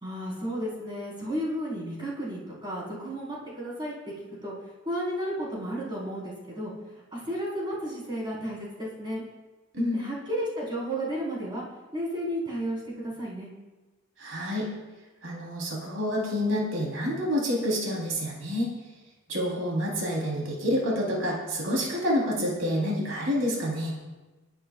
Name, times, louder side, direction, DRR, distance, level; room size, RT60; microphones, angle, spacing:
voice 1, 0.0-3.9 4.4-4.5 4.9-6.7 7.1-9.2 9.9-11.6 11.9-13.5, equal, 25° right, -7 dB, 4.3 m, -33 dB
voice 2, 14.2-14.7 15.2-18.7 19.3-23.9, equal, 85° right, -3 dB, 3.5 m, -28 dB
28.0 x 9.9 x 2.4 m, 1.2 s
head